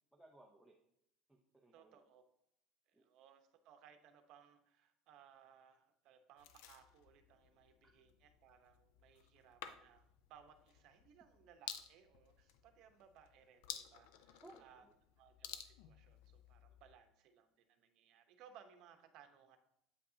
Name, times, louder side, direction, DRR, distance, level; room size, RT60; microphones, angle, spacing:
voice 1, 0.1-0.8 1.3-2.0 2.9-3.0 14.4-14.9, right 1 dB, 5° right, -1 dB, 0.7 m, -62 dB
voice 2, 1.7-2.2 2.9-14.8 15.2-19.6, right 8 dB, 60° right, 7 dB, 0.9 m, -64 dB
sound 1, 6.4-16.9, left 10 dB, 80° left, 0.5 m, -54 dB
8.4 x 5.3 x 2.7 m, 0.77 s
cardioid pair, 135°, 0 cm